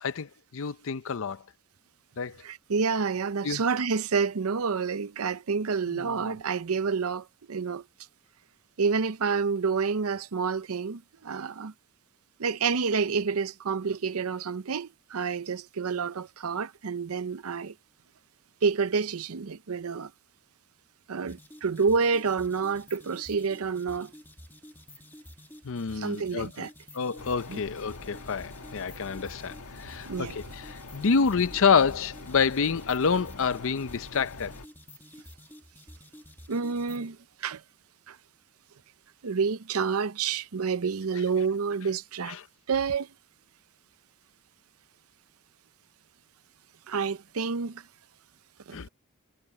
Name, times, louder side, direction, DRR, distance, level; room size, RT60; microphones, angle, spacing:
voice 1, 0.0-1.4 2.2-2.4 3.4-3.6 5.9-6.3 25.6-26.7 26.9-34.5 42.3-42.4 48.7-48.9, left 5 dB, 65° left, 0.6 m, -28 dB
voice 2, 2.4-7.8 8.8-11.7 12.4-17.7 18.6-20.1 21.1-24.1 25.9-26.7 27.5-27.6 30.1-30.4 36.5-37.6 38.1-38.2 39.2-42.4 42.7-43.1 46.9-47.8 48.7-48.8, right 5 dB, 80° right, 0.7 m, -28 dB
sound 1, 21.3-37.1, left 1 dB, 10° left, 1.9 m, -50 dB
sound 2, 27.2-34.7, left 3 dB, 85° left, 1.4 m, -45 dB
head